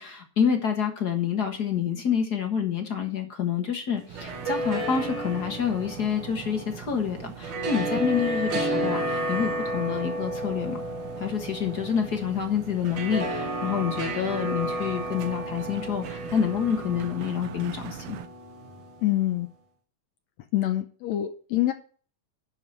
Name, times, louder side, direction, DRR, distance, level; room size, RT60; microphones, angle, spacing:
voice 1, 0.0-10.8 11.2-18.2, left 7 dB, 45° left, 1.5 m, -28 dB
sound 1, 4.0-19.2, right 1 dB, 50° right, 2.1 m, -32 dB
sound 2, 4.1-18.3, right 10 dB, 75° right, 1.3 m, -42 dB
voice 2, 19.0-19.5 20.5-21.7, left 14 dB, 75° left, 1.8 m, -25 dB
11.0 x 5.0 x 7.1 m
omnidirectional pair, 3.3 m